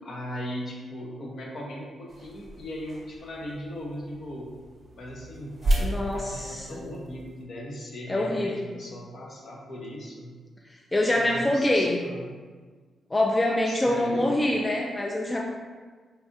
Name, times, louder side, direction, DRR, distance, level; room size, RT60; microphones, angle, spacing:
voice 1, 0.0-4.5 5.0-10.3 11.2-12.3 13.7-14.3, equal, 60° left, -2 dB, 0.7 m, -38 dB
sound 1, 2.1-7.4, right 1 dB, 40° right, 0.7 m, -33 dB
voice 2, 5.8-6.8 8.1-8.7 10.7-12.0 13.1-15.4, left 1 dB, 20° left, 0 dB, 0.3 m, -25 dB
4.0 x 2.4 x 2.6 m, 1.5 s
cardioid pair, 90°, 0 cm